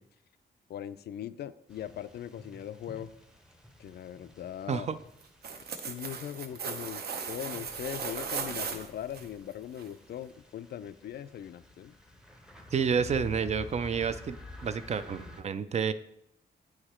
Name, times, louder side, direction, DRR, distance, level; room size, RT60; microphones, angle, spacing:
voice 1, 0.7-3.1 3.8-4.9 5.7-11.9, left 10 dB, 65° left, 14 dB, 0.4 m, -40 dB
sound 1, 1.7-15.4, left 2 dB, 5° right, 0.6 m, -50 dB
sound 2, 5.2-9.2 9.8-9.9, right 6 dB, 60° right, 0.7 m, -37 dB
voice 2, 12.7-15.9, right 6 dB, 40° right, 12 dB, 0.4 m, -30 dB
9.0 x 4.8 x 4.3 m, 0.76 s
wide cardioid pair, 175°, 18 cm